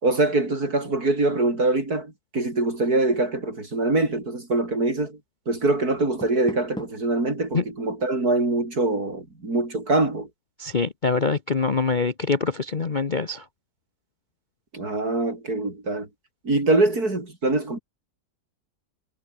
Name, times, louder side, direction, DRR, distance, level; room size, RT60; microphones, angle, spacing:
voice 1, 0.0-5.2 5.5-10.3 14.7-16.1 16.4-17.8, right 2 dB, 55° right, 6.1 m, -24 dB
Door, 5.9-7.2, equal, ahead, 6.8 m, -39 dB
voice 2, 10.6-13.4, left 4 dB, 35° left, 0.9 m, -24 dB
omnidirectional pair, 1.9 m